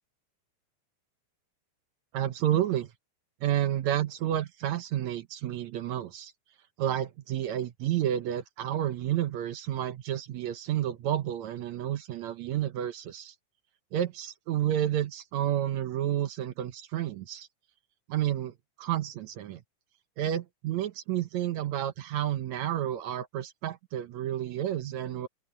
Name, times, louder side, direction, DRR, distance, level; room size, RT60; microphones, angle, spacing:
voice 1, 2.1-2.9 3.4-6.3 6.8-13.3 13.9-17.5 18.1-19.6 20.2-25.3, right 11 dB, 70° right, 2.0 m, -30 dB
open air
omnidirectional pair, 3.6 m